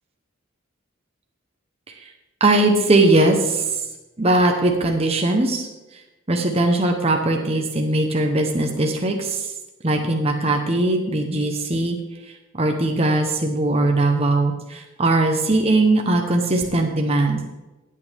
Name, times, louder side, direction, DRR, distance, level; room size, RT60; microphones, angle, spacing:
voice 1, 2.4-3.6 4.2-5.7 6.3-9.5 9.8-12.0 12.6-17.4, right 2 dB, 30° right, 2 dB, 1.0 m, -20 dB
15.5 x 8.7 x 3.5 m, 1.1 s
head